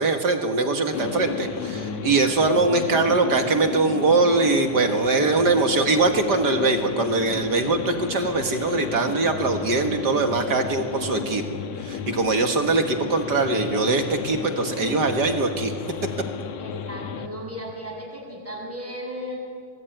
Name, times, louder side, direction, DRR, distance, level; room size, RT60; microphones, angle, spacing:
voice 1, 0.0-11.4 11.8-15.7, right 3 dB, 40° right, 5 dB, 1.8 m, -22 dB
sound 1, 0.9-17.3, left 7 dB, 70° left, 2.5 m, -33 dB
voice 2, 12.9-13.4 16.6-19.4, equal, 5° right, -1 dB, 6.8 m, -36 dB
26.0 x 20.0 x 9.1 m, 2.3 s
omnidirectional pair, 3.3 m